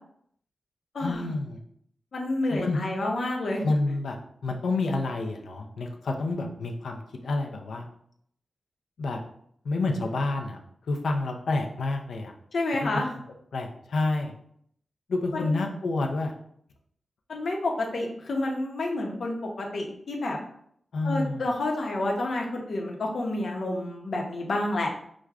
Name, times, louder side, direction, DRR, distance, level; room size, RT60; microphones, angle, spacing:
voice 1, 1.0-1.6 2.5-2.8 3.6-7.9 9.0-9.2 9.6-10.6 10.9-12.3 12.8-13.0 13.5-14.3 15.1-16.3 20.9-21.4, left 2 dB, 80° left, 2 dB, 0.5 m, -29 dB
voice 2, 2.1-3.6 12.5-13.1 15.3-15.5 17.3-20.4 21.0-24.9, left 2 dB, 55° left, 0 dB, 0.8 m, -29 dB
6.0 x 2.2 x 2.4 m, 0.67 s
wide cardioid pair, 150°, 0 cm